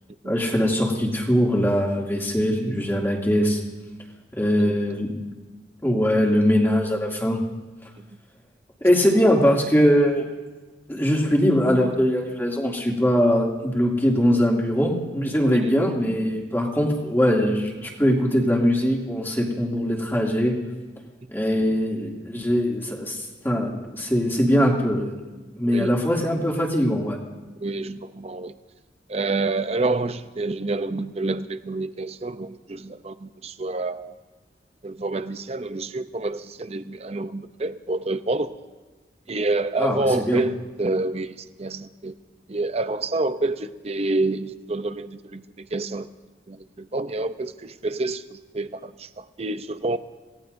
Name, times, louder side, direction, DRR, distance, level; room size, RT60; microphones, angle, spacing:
voice 1, 0.2-3.6 4.4-5.2 5.8-7.4 8.8-10.3 10.9-20.6 21.3-25.1 25.6-27.2 39.8-40.4, equal, 15° left, 2.5 m, -21 dB
voice 2, 4.6-5.1 8.0-8.1 15.5-15.7 25.7-26.0 27.6-28.5 29.1-34.1 34.8-38.6 39.3-42.1 42.5-46.1 46.5-50.0, right 2 dB, 35° right, 0.6 m, -28 dB
27.5 x 18.0 x 2.7 m
head